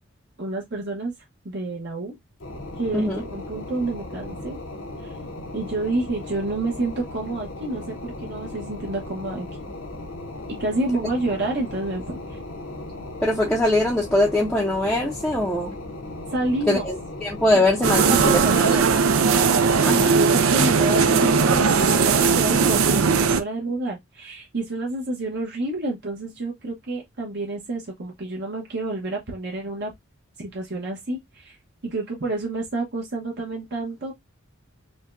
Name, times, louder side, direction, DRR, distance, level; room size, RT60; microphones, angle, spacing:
voice 1, 0.4-1.1 1.4-2.2 2.8-4.6 5.0-5.1 5.5-9.5 10.6-12.4 16.3-16.9 17.5-19.0 19.9-29.9 30.4-31.6 31.8-34.1, right 2 dB, 55° right, 1.0 m, -29 dB
sound 1, 2.4-18.6, left 2 dB, 65° left, 0.9 m, -37 dB
voice 2, 2.9-3.2 13.2-15.7 16.7-19.0 19.8-20.2, left 1 dB, 5° left, 0.6 m, -22 dB
sound 2, 17.8-23.4, right 5 dB, 80° right, 0.5 m, -18 dB
5.0 x 2.2 x 2.5 m
head